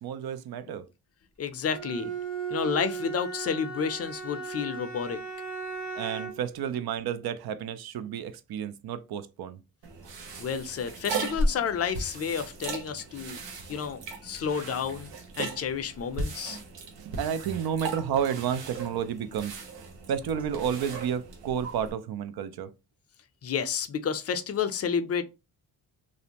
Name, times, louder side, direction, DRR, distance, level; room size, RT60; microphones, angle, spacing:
voice 1, 0.0-0.8 6.0-9.6 17.0-19.5 20.1-22.7, right 8 dB, 60° right, 0.5 m, -31 dB
voice 2, 1.4-2.1 2.5-5.2 10.4-13.4 13.7-15.1 15.4-16.6 23.4-25.2, left 7 dB, 35° left, 0.5 m, -30 dB
Bowed string instrument, 1.7-6.5, right 5 dB, 40° right, 0.9 m, -36 dB
sound 1, 9.8-21.9, right 2 dB, 75° right, 0.9 m, -36 dB
2.6 x 2.0 x 2.9 m
supercardioid pair, 60°, 44 cm